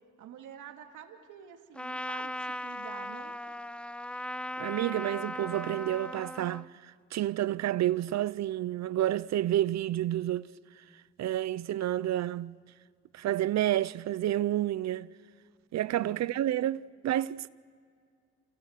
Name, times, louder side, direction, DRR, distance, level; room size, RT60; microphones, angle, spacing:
voice 1, 0.2-3.4 15.8-16.2, right 9 dB, 85° right, 2.5 m, -48 dB
Trumpet, 1.7-6.7, left 1 dB, 5° left, 0.6 m, -38 dB
voice 2, 4.6-10.5 11.2-12.6 13.1-15.1 15.7-17.5, right 13 dB, 60° right, 0.6 m, -30 dB
29.5 x 29.0 x 6.6 m
cardioid pair, 90°, 30 cm